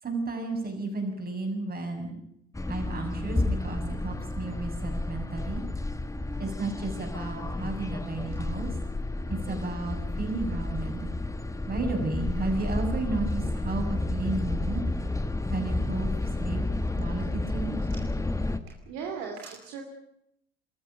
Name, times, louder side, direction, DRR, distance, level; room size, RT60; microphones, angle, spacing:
voice 1, 0.0-2.2 2.7-5.6 6.4-8.8 9.3-11.1 11.7-14.8 15.5-16.6 16.9-17.7, right 3 dB, 30° right, 3 dB, 7.0 m, -33 dB
sound 1, 2.5-18.6, left 2 dB, 10° left, 1.5 m, -31 dB
voice 2, 18.8-19.8, right 6 dB, 65° right, 3 dB, 2.7 m, -38 dB
25.5 x 14.0 x 9.1 m, 0.79 s
figure-of-eight pair, 60°, 30 cm